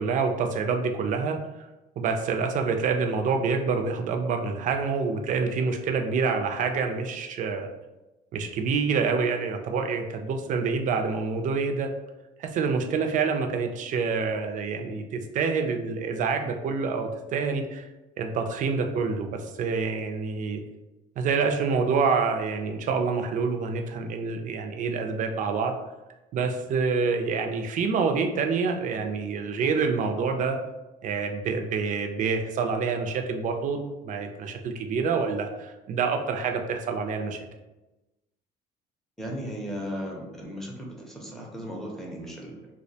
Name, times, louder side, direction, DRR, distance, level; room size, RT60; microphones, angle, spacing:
voice 1, 0.0-1.4 2.0-7.7 8.3-11.9 12.4-17.9 18.2-20.6 21.2-25.7 26.3-30.6 31.0-37.5, right 5 dB, 50° right, 5 dB, 0.4 m, -27 dB
voice 2, 39.2-42.7, equal, ahead, -2 dB, 0.5 m, -36 dB
2.3 x 2.1 x 2.6 m, 1.0 s
cardioid pair, 110°, 17 cm